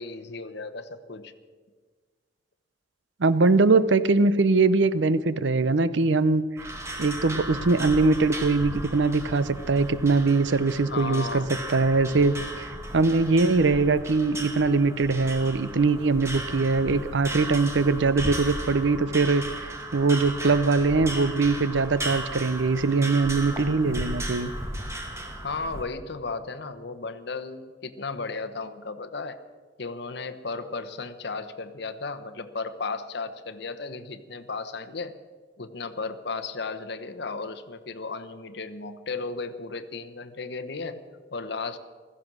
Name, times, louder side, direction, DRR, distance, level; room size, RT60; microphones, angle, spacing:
voice 1, 0.0-1.3 10.9-11.5 25.4-29.4 29.8-35.2 35.6-41.0 41.3-41.8, left 4 dB, 60° left, 8 dB, 1.0 m, -35 dB
voice 2, 3.2-6.4 7.0-19.7 19.9-24.5, right 3 dB, 75° right, 15 dB, 0.7 m, -22 dB
sound 1, 6.6-25.8, right 1 dB, 15° right, 1.9 m, -35 dB
15.5 x 14.5 x 6.2 m, 1.5 s
head